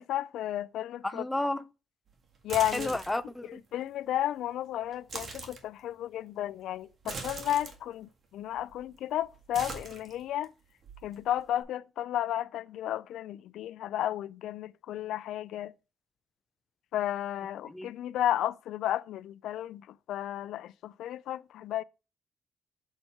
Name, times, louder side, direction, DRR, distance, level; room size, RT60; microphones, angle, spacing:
voice 1, 0.0-1.2 2.4-3.0 3.7-10.5 11.0-15.7 16.9-21.8, left 12 dB, 80° left, 0.3 m, -33 dB
voice 2, 1.0-1.7 2.7-3.6 17.6-17.9, left 1 dB, 15° left, 0.5 m, -32 dB
sound 1, 2.3-3.3 4.9-5.6 7.0-7.8 8.6-9.0 9.2-10.4 10.8-11.6, right 4 dB, 50° right, 1.7 m, -41 dB
6.6 x 4.3 x 4.5 m
cardioid pair, 90°, 0 cm